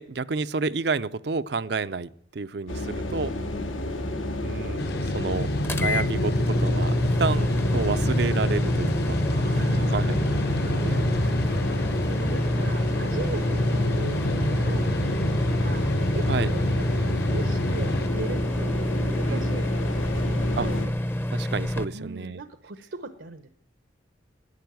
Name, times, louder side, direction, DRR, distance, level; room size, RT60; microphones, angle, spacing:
voice 1, 0.0-3.3 4.4-5.5 5.8-9.1 9.5-10.2 10.6-11.6 16.3-16.5 19.3-19.7 20.6-20.7 21.3-22.4, right 4 dB, 55° right, 15 dB, 0.5 m, -30 dB
sound 1, 2.7-20.9, left 1 dB, 90° left, 2.3 m, -31 dB
voice 2, 3.3-3.7 9.3-10.1 10.4-10.7 11.1-20.8 21.9-23.5, right 3 dB, 75° right, 10 dB, 0.9 m, -40 dB
sound 2, 4.8-18.1, left 1 dB, 55° left, 1.0 m, -29 dB
sound 3, 5.6-21.8, left 1 dB, 10° left, 0.7 m, -28 dB
11.5 x 9.8 x 9.4 m, 0.68 s
head